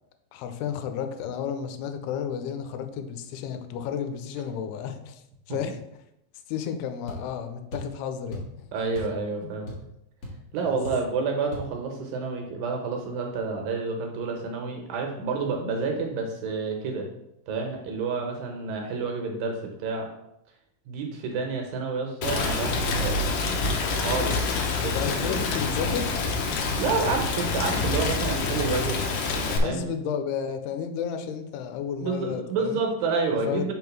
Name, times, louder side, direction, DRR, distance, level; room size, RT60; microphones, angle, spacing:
voice 1, 0.3-5.8 6.5-8.7 9.4-9.5 10.7-10.8 24.2-24.4 24.9-26.1 29.6-32.8 33.5-33.7, left 7 dB, 90° left, 8 dB, 2.6 m, -32 dB
sound 1, 7.1-7.3 7.7-8.0 8.3-8.5 9.0-9.2 9.5-10.0 10.2-10.4 10.8-11.1 11.5-11.7, equal, 50° left, 1.7 m, -36 dB
voice 2, 8.7-9.7 10.5-17.1 17.5-20.1 20.9-23.2 23.8-24.4 24.8-25.4 26.8-29.0 29.3-29.8 32.0-33.7, right 4 dB, 75° right, 2 dB, 2.2 m, -29 dB
Rain, 22.2-29.6, left 3 dB, 75° left, 2.1 m, -27 dB
5.7 x 3.7 x 5.9 m, 0.84 s
omnidirectional pair, 4.6 m